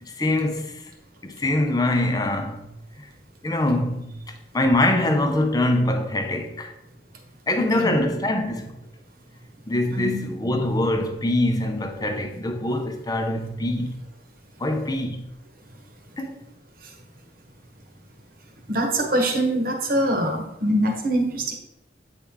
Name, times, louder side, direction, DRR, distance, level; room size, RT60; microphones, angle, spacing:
voice 1, 0.0-0.8 1.2-2.7 3.0-3.1 3.4-6.7 7.5-8.8 9.7-14.0 14.6-15.2 16.2-16.4, left 1 dB, 20° left, 0.6 m, -24 dB
voice 2, 7.6-8.0 9.9-10.2 12.1-12.2 18.7-21.5, right 1 dB, 55° right, 1.2 m, -24 dB
8.5 x 4.5 x 3.6 m
head